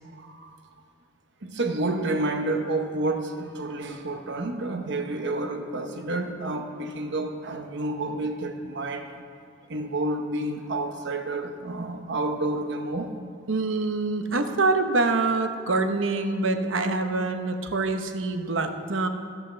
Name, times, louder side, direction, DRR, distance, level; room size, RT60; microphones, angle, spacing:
voice 1, 0.2-0.5 1.4-9.1 9.7-13.1, right 2 dB, 65° right, 4 dB, 1.0 m, -29 dB
voice 2, 13.5-19.1, right 3 dB, 90° right, 7 dB, 0.9 m, -25 dB
13.0 x 5.8 x 6.9 m, 2.4 s
head